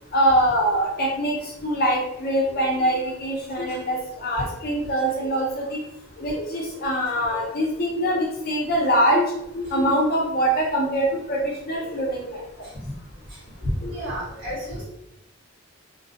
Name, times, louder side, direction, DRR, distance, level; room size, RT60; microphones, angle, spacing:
voice 1, 0.1-1.3 1.6-5.8 6.2-9.2 9.5-12.4 13.8-14.1, right 1 dB, 45° left, -2 dB, 0.5 m, -23 dB
voice 2, 13.6-14.8, equal, 55° right, -7 dB, 1.4 m, -30 dB
2.5 x 2.3 x 2.8 m, 0.85 s
head